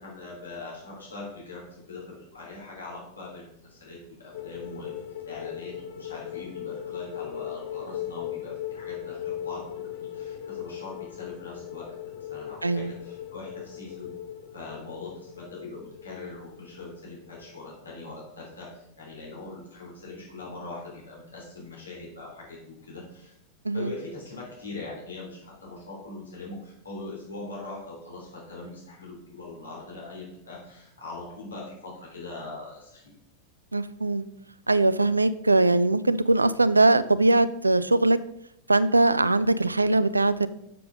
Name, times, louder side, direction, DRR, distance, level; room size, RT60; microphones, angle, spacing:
voice 1, 0.0-12.0 12.3-14.1 14.5-23.3 23.7-33.0, left 3 dB, 75° left, -3 dB, 3.1 m, -41 dB
sound 1, 4.3-17.8 18.0-18.3, left 11 dB, 50° left, 0.7 m, -38 dB
voice 2, 33.7-34.3 34.7-38.2 38.7-40.5, right 2 dB, 80° right, 15 dB, 0.4 m, -21 dB
6.8 x 6.8 x 5.0 m, 0.79 s
figure-of-eight pair, 90°, 0 cm